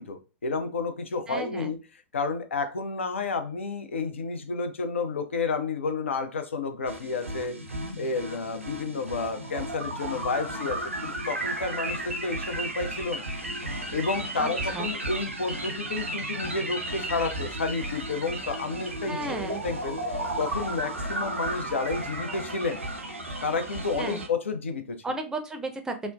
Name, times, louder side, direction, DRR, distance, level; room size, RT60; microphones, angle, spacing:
voice 1, 0.0-1.8 2.1-7.6 8.0-13.3 13.9-19.2 19.5-20.0 20.4-22.8 23.4-25.0, left 4 dB, 70° left, 0.5 m, -31 dB
voice 2, 1.3-1.7 14.4-14.9 19.1-19.6 24.0-24.2 25.0-26.1, right 2 dB, 10° right, 0.5 m, -34 dB
sound 1, 6.9-24.3, right 1 dB, 85° right, 0.5 m, -34 dB
3.1 x 2.0 x 2.2 m
figure-of-eight pair, 100°, 7 cm